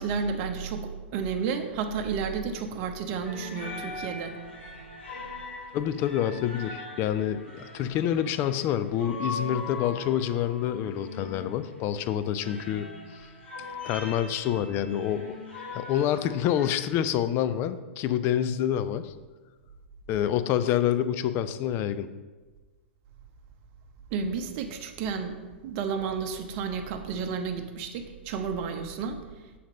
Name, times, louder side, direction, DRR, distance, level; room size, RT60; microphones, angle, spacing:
voice 1, 0.0-4.3 24.1-29.2, right 6 dB, 45° right, 5 dB, 0.8 m, -31 dB
sound 1, 3.2-16.7, left 3 dB, 75° left, 2.2 m, -41 dB
voice 2, 5.7-12.9 13.1-13.2 13.8-15.3 15.7-19.1 20.1-22.1, left 10 dB, 35° left, 12 dB, 0.4 m, -27 dB
7.4 x 4.2 x 5.0 m, 1.3 s
figure-of-eight pair, 100°, 6 cm